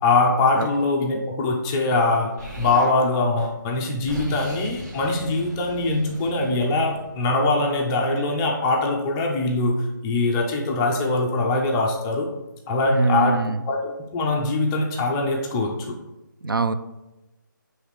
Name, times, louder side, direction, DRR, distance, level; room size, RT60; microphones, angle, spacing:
voice 1, 0.0-12.3 12.7-16.0, left 2 dB, 10° left, 0 dB, 0.4 m, -22 dB
Explosion, 2.4-3.0 3.7-7.6, equal, 55° right, 1.6 m, -37 dB
voice 2, 12.9-13.6 16.4-16.7, right 3 dB, 90° right, 11 dB, 0.4 m, -22 dB
6.3 x 3.2 x 4.7 m, 1.0 s
figure-of-eight pair, 155°, 11 cm